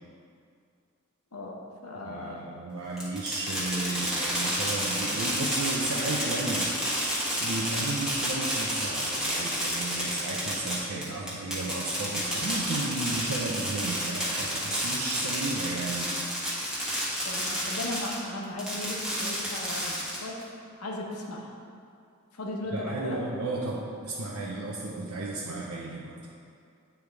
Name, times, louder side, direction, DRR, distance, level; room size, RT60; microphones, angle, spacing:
voice 1, 1.3-2.5 17.2-20.5 20.8-21.5 22.3-23.2, left 1 dB, 90° left, -1 dB, 1.0 m, -37 dB
voice 2, 2.0-6.7 7.4-16.2 22.7-26.3, right 2 dB, 85° right, -4 dB, 0.7 m, -34 dB
Fireworks, 3.0-18.2 18.6-20.4, equal, 5° right, 1.3 m, -30 dB
8.7 x 3.5 x 4.7 m, 2.4 s
head